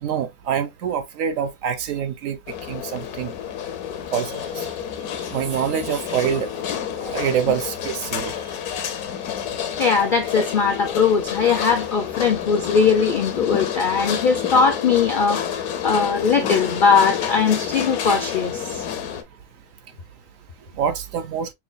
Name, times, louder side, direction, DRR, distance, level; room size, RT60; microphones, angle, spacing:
voice 1, 0.0-2.4 2.7-3.3 4.1-4.7 5.3-6.5 7.0-8.4 20.8-21.5, right 8 dB, 70° right, 0.9 m, -25 dB
sound 1, 2.5-19.2, left 9 dB, 80° left, 1.2 m, -29 dB
voice 2, 9.8-18.8, left 5 dB, 60° left, 0.5 m, -20 dB
5.9 x 2.2 x 2.4 m
omnidirectional pair, 1.6 m